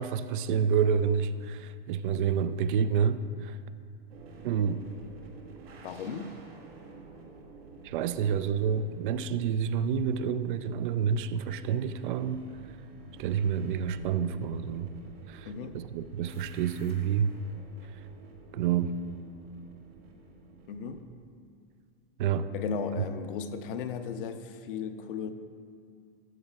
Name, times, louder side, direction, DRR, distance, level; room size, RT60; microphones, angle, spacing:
voice 1, 0.0-3.6 4.4-4.8 7.8-12.5 13.2-14.9 15.3-15.5 15.7-17.3 18.5-19.0 22.2-22.5, right 7 dB, 55° right, 13 dB, 0.5 m, -28 dB
sound 1, 4.1-21.0, right 3 dB, 80° right, 1.5 m, -51 dB
voice 2, 5.8-6.4 15.4-15.8 20.7-21.0 22.5-25.3, left 6 dB, 60° left, 8 dB, 0.7 m, -36 dB
12.5 x 7.6 x 2.4 m, 2.2 s
hypercardioid pair, 125°, 30 cm